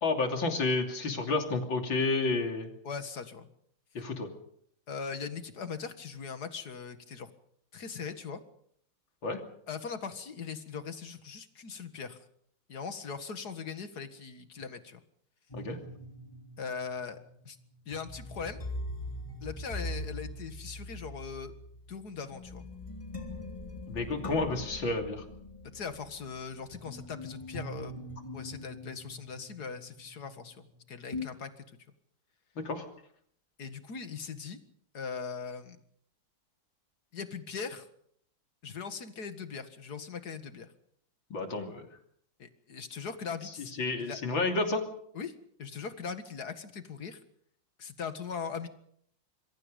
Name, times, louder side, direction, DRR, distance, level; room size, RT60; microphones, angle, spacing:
voice 1, 0.0-2.7 4.0-4.3 9.2-9.4 15.5-15.8 23.9-25.3 32.6-32.9 41.3-41.9 43.8-44.9, left 3 dB, 80° left, 4 dB, 3.7 m, -30 dB
voice 2, 2.8-3.5 4.9-7.3 7.7-8.4 9.7-12.2 12.7-15.0 16.6-17.2 17.4-17.6 17.9-18.6 19.4-21.5 21.9-22.7 25.6-28.0 28.3-31.7 33.6-34.6 34.9-35.8 37.1-37.9 38.6-40.7 42.4-43.7 44.0-44.2 45.1-45.3 45.6-47.2 47.8-48.7, left 6 dB, 55° left, 9 dB, 2.3 m, -40 dB
sound 1, 15.5-30.7 31.1-31.3, left 1 dB, 15° left, 3.3 m, -42 dB
26.5 x 22.5 x 5.3 m, 0.66 s
omnidirectional pair, 2.1 m